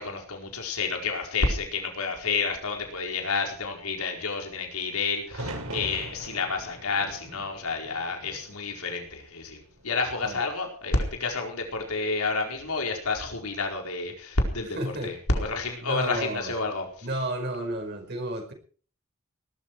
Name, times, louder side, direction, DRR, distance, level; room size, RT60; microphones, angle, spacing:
voice 1, 0.0-14.8 15.0-17.1, left 3 dB, 85° left, 2 dB, 4.6 m, -29 dB
sound 1, 5.3-9.3 9.7-10.5 12.3-12.8, right 1 dB, 85° right, 6.5 m, -41 dB
voice 2, 14.8-15.1 15.8-16.5 17.0-18.5, right 1 dB, 50° right, 2 dB, 5.3 m, -31 dB
19.5 x 13.0 x 4.7 m, 0.43 s
head